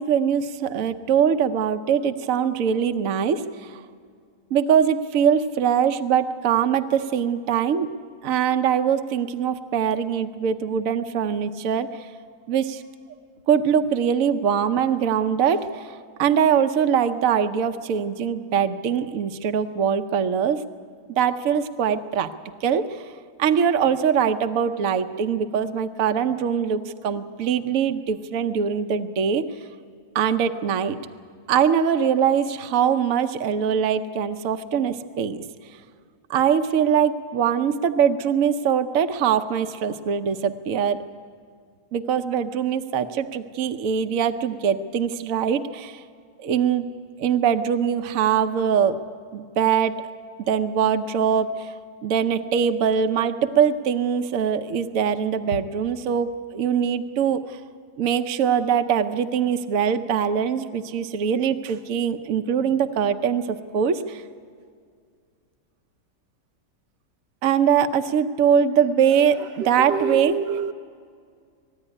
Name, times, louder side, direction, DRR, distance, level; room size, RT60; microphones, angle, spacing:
voice 1, 0.0-3.8 4.5-7.9 8.2-12.1 12.5-12.8 13.5-20.6 21.1-22.3 22.6-23.0 23.4-29.4 30.1-31.0 31.5-35.4 36.3-41.0 41.9-46.0 46.4-46.9 47.2-49.0 49.3-50.0 50.5-51.7 52.0-57.6 58.0-64.2 67.4-70.4, right 7 dB, 60° right, 9 dB, 1.1 m, -22 dB
voice 2, 69.9-70.7, right 5 dB, 85° right, 8 dB, 1.4 m, -26 dB
20.0 x 15.5 x 9.9 m, 2.1 s
omnidirectional pair, 1.8 m